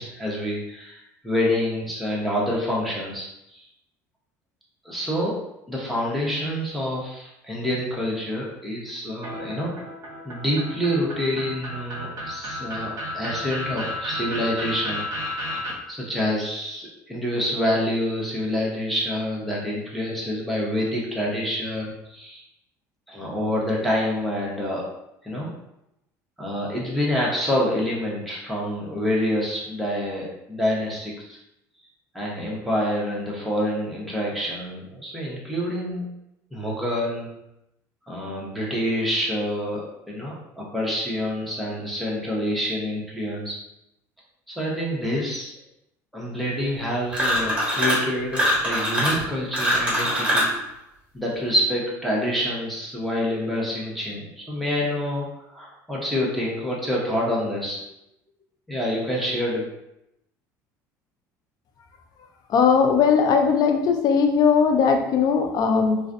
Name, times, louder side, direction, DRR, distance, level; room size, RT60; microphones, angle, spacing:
voice 1, 0.0-3.6 4.8-5.4 5.7-9.7 10.2-22.4 23.1-24.9 25.2-25.5 26.4-31.4 32.1-36.1 36.5-37.3 38.1-43.6 44.5-45.5 46.1-50.5 51.1-57.8 58.7-59.6, equal, ahead, -5 dB, 0.8 m, -27 dB
sound 1, 9.2-15.7, left 1 dB, 40° right, 1.0 m, -32 dB
sound 2, 47.1-48.1 48.3-50.6, equal, 15° right, 1.3 m, -23 dB
voice 2, 62.5-66.0, left 6 dB, 50° left, 4 dB, 0.4 m, -19 dB
2.3 x 2.2 x 2.5 m, 0.85 s
supercardioid pair, 85°, 8 cm